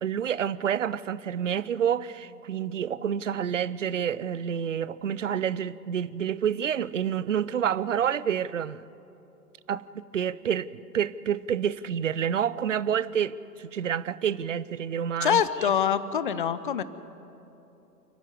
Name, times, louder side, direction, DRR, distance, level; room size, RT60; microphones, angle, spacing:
voice 1, 0.0-8.8 9.7-10.7 10.9-15.4, right 8 dB, 50° right, 18 dB, 0.6 m, -28 dB
voice 2, 15.2-16.8, left 8 dB, 35° left, 15 dB, 0.7 m, -25 dB
29.0 x 10.0 x 9.6 m, 3.0 s
figure-of-eight pair, 125°, 48 cm